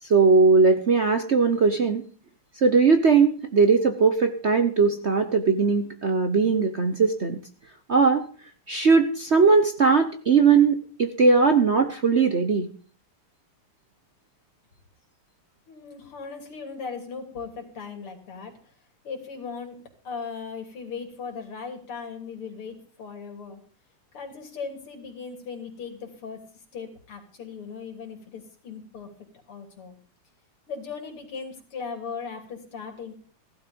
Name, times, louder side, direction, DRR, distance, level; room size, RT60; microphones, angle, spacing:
voice 1, 0.0-2.0 2.6-7.4 7.9-8.2 8.7-12.7, right 4 dB, 55° right, 8 dB, 0.7 m, -19 dB
voice 2, 15.7-18.6 19.0-19.8 20.0-23.6 24.1-29.1 29.5-29.9 30.7-33.1, left 5 dB, 75° left, 3 dB, 3.9 m, -38 dB
15.5 x 12.5 x 5.2 m, 0.41 s
omnidirectional pair, 2.4 m